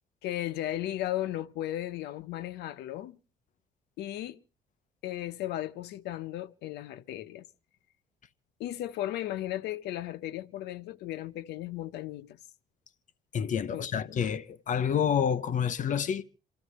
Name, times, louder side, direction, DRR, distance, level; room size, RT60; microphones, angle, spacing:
voice 1, 0.2-3.2 4.0-4.4 5.0-7.4 8.6-12.4 13.7-14.2, left 13 dB, 80° left, 1.0 m, -35 dB
voice 2, 13.3-16.2, left 8 dB, 50° left, 1.0 m, -28 dB
28.0 x 13.0 x 3.1 m
cardioid pair, 110°, 17 cm